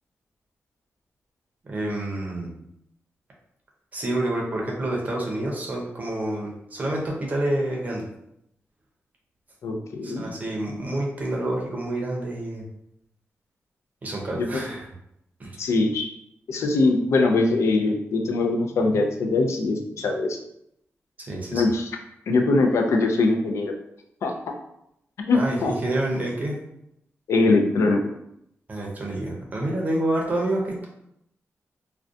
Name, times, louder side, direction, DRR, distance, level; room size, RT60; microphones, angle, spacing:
voice 1, 1.6-2.5 3.9-8.1 10.0-12.6 14.0-14.9 15.4-15.6 21.3-21.6 25.3-26.6 28.7-30.9, right 1 dB, 35° right, -1 dB, 0.5 m, -28 dB
voice 2, 9.6-10.2 14.4-14.5 15.6-16.1 16.5-20.4 21.5-21.8 22.3-23.7 24.2-24.3 25.2-25.7 27.3-28.0, left 3 dB, 85° left, 3 dB, 0.3 m, -22 dB
2.4 x 2.1 x 2.5 m, 0.79 s
wide cardioid pair, 155°, 5 cm